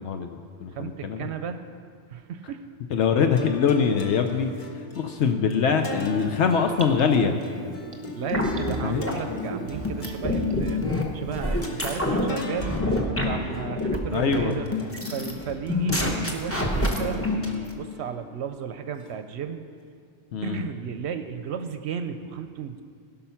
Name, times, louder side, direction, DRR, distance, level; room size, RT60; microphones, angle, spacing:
voice 1, 0.0-1.3 2.9-4.5 4.9-7.4 8.8-9.0 14.1-14.6 20.3-20.7, left 6 dB, 75° left, 6 dB, 1.0 m, -23 dB
voice 2, 0.7-1.6 2.1-2.6 8.1-10.8 11.1-14.7 15.1-19.6 20.4-22.8, right 7 dB, 70° right, 9 dB, 0.8 m, -34 dB
sound 1, 3.4-19.8, left 4 dB, 45° left, 1.1 m, -41 dB
Gurgling / Bathtub (filling or washing), 5.9-11.1 11.4-11.5, right 1 dB, 30° right, 0.9 m, -37 dB
sound 2, 8.3-17.6, left 2 dB, 10° left, 1.0 m, -27 dB
16.5 x 5.6 x 5.7 m, 2.1 s
omnidirectional pair, 1.2 m